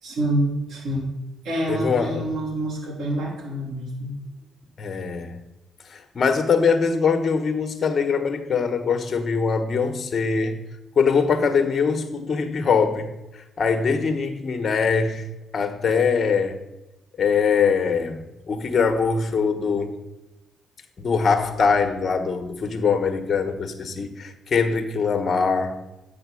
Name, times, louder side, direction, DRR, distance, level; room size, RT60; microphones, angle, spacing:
voice 1, 0.0-1.1 1.4-4.1, right 1 dB, 75° right, 3.5 m, -27 dB
voice 2, 1.7-2.3 4.8-5.4 5.9-10.7 11.0-13.1 13.6-15.3 15.5-16.6 17.2-18.2 18.5-19.9 21.0-25.8, left 5 dB, 45° left, 1.3 m, -22 dB
8.4 x 6.3 x 6.4 m
cardioid pair, 90°, 0 cm